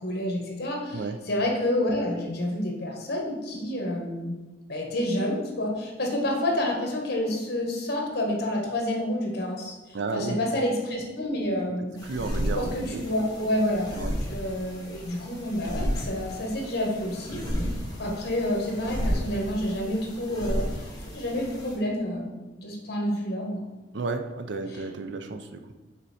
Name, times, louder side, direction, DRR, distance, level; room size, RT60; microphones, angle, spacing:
voice 1, 0.0-1.0 1.3-4.3 4.7-11.9 12.5-13.9 14.2-17.7 18.0-20.9 21.1-23.6, left 1 dB, 60° left, 0 dB, 1.4 m, -29 dB
voice 2, 9.9-10.4 12.0-13.0 14.0-14.2 23.9-25.7, right 3 dB, 70° right, 7 dB, 0.5 m, -32 dB
sound 1, 12.0-21.8, equal, 20° left, 1.2 m, -33 dB
5.4 x 4.4 x 4.2 m, 1.2 s
head